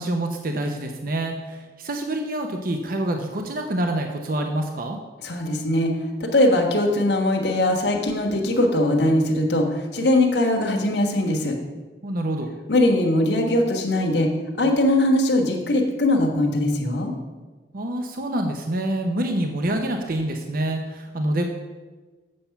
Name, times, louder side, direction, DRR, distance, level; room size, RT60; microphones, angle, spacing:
voice 1, 0.0-5.0 12.0-12.5 17.7-21.4, right 1 dB, 50° right, 4 dB, 0.7 m, -26 dB
voice 2, 5.2-5.9 6.2-11.5 12.7-14.3 14.6-17.1, left 1 dB, 65° left, 1 dB, 1.4 m, -21 dB
7.7 x 6.9 x 5.8 m, 1.3 s
head